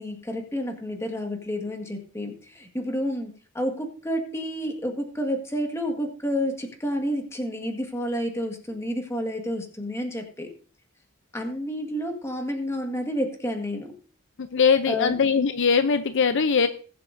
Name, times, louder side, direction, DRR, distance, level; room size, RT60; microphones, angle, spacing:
voice 1, 0.0-10.5 11.3-13.9 14.9-15.1, equal, 15° left, 4 dB, 1.7 m, -30 dB
voice 2, 14.5-16.7, left 6 dB, 60° left, 9 dB, 0.6 m, -21 dB
20.5 x 7.7 x 2.7 m, 0.40 s
head